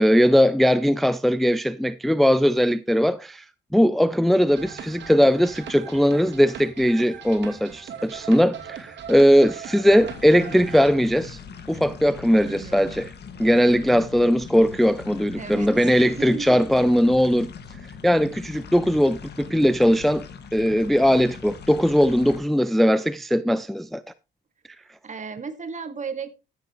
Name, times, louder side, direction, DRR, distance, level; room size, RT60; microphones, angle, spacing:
voice 1, 0.0-3.4 3.7-11.4 11.7-13.1 13.4-17.5 18.0-20.3 20.5-24.0, equal, ahead, 0.5 m, -19 dB
sound 1, 4.5-10.9, right 7 dB, 65° right, 2.5 m, -39 dB
sound 2, 10.0-22.4, left 6 dB, 55° left, 2.0 m, -41 dB
voice 2, 12.5-13.0 15.4-16.6 25.0-26.4, right 5 dB, 40° right, 1.8 m, -35 dB
13.5 x 8.1 x 3.1 m
cardioid pair, 90°, 20 cm